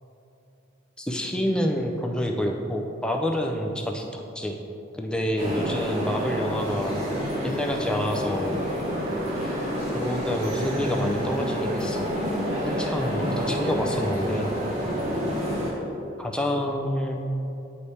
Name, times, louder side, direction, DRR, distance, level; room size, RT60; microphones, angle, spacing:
voice 1, 1.0-4.6 4.9-7.0 7.4-8.6 9.9-12.1 12.6-14.5 16.2-17.2, equal, 5° left, 1 dB, 0.4 m, -28 dB
sound 1, 5.4-15.7, equal, 35° right, 1.1 m, -28 dB
9.5 x 3.3 x 4.2 m, 2.8 s
head